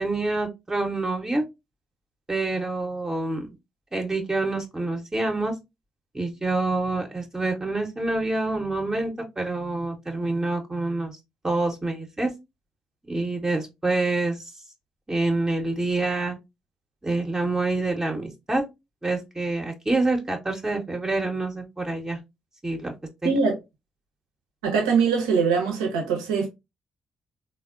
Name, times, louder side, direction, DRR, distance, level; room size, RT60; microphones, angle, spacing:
voice 1, 0.0-1.4 2.3-3.5 3.9-5.5 6.1-11.2 11.4-12.3 13.1-14.5 15.1-16.4 17.0-18.6 19.0-22.2 22.6-22.9 23.2-23.3, right 2 dB, 20° right, 0.7 m, -27 dB
voice 2, 23.2-23.6 24.6-26.5, right 5 dB, 85° right, 0.6 m, -22 dB
3.4 x 2.0 x 2.3 m
hypercardioid pair, 40°, 3 cm